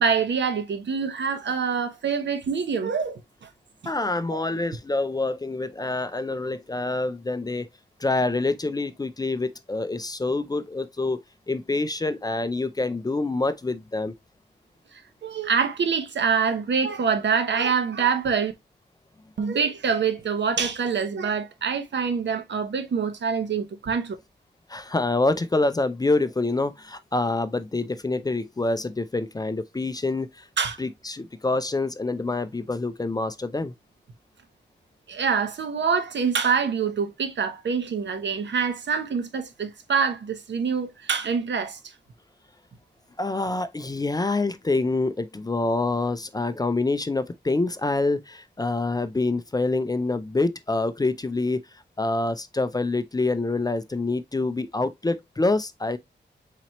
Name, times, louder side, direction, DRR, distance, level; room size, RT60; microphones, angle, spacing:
voice 1, 0.0-3.5 4.3-4.4 15.2-18.5 19.4-24.1 30.6-30.8 35.1-41.8, right 6 dB, 75° right, 0.9 m, -25 dB
voice 2, 3.9-7.7 8.0-14.1 24.7-30.5 30.8-33.7 43.2-51.6 52.0-56.0, left 2 dB, 20° left, 0.4 m, -26 dB
4.4 x 4.1 x 2.9 m
wide cardioid pair, 130°, 19 cm